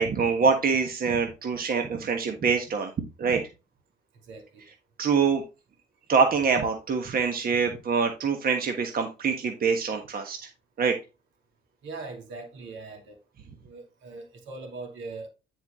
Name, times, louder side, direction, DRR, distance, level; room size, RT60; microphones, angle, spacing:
voice 1, 0.0-2.9 3.2-3.4 5.0-5.4 6.1-10.4 10.8-10.9, right 5 dB, 50° right, 1.4 m, -25 dB
voice 2, 4.3-4.6 11.8-13.2 13.6-15.3, right 3 dB, 75° right, 2.6 m, -40 dB
9.5 x 4.6 x 3.6 m
supercardioid pair, 70°, 20 cm